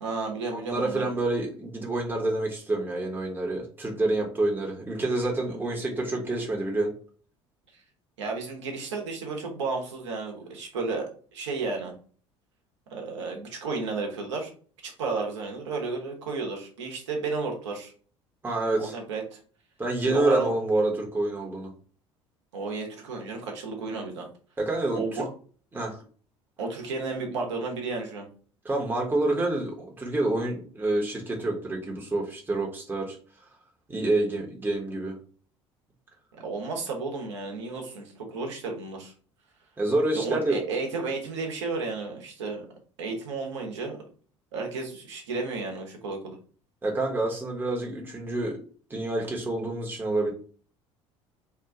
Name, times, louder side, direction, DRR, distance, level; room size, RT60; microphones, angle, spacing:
voice 1, 0.0-1.1 5.5-5.6 8.2-11.9 12.9-14.5 14.8-17.9 18.8-19.4 20.0-20.5 22.5-24.3 24.9-25.3 26.6-28.3 36.4-39.1 40.1-42.7 43.0-44.0 44.5-46.4, right 4 dB, 70° right, 2 dB, 0.9 m, -32 dB
voice 2, 0.5-6.9 18.4-18.9 19.8-21.7 24.6-25.3 25.7-26.0 28.6-33.2 33.9-35.2 39.8-40.6 46.8-48.6 48.9-50.3, right 2 dB, 15° right, -1 dB, 0.9 m, -27 dB
2.9 x 2.3 x 3.6 m, 0.42 s
figure-of-eight pair, 60°, 16 cm